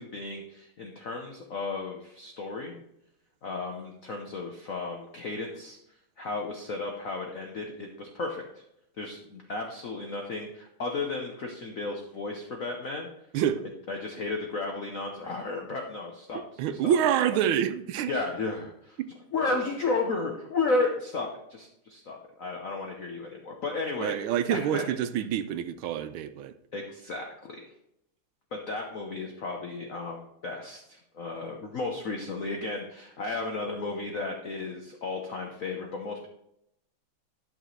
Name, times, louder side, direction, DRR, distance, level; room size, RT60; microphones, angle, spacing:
voice 1, 0.0-2.8 3.4-5.8 6.2-8.6 9.0-13.1 13.9-16.4 16.8-16.9 18.1-19.0 19.3-24.8 26.7-27.6 28.5-36.3, left 3 dB, 55° left, 1.0 m, -33 dB
voice 2, 13.3-13.7 16.6-18.1 19.0-19.1 24.0-26.5, right 9 dB, 85° right, 1.5 m, -27 dB
11.0 x 6.1 x 3.2 m
omnidirectional pair, 2.3 m